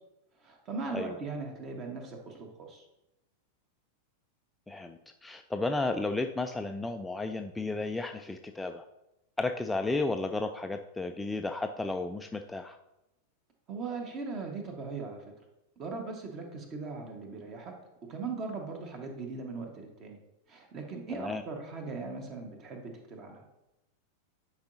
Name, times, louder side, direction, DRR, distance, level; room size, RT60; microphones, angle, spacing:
voice 1, 0.4-2.8 13.7-15.2 15.8-17.7 18.0-20.2 20.5-23.4, right 4 dB, 35° right, 3 dB, 1.4 m, -39 dB
voice 2, 4.7-8.8 9.4-12.8 21.2-21.4, left 2 dB, 5° left, 5 dB, 0.3 m, -33 dB
10.0 x 4.8 x 2.7 m, 0.91 s
figure-of-eight pair, 90°, 0 cm